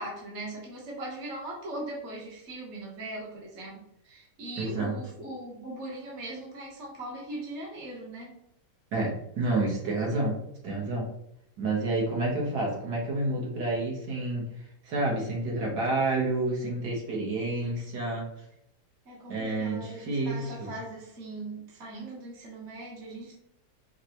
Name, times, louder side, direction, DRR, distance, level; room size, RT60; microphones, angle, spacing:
voice 1, 0.0-8.4 19.0-23.4, right 1 dB, 45° right, -4 dB, 1.2 m, -40 dB
voice 2, 4.6-4.9 8.9-10.4 10.6-11.1 11.6-14.4 14.8-18.3 19.3-20.7, right 2 dB, 65° right, -2 dB, 1.6 m, -29 dB
5.5 x 2.2 x 2.8 m, 0.76 s
omnidirectional pair, 1.9 m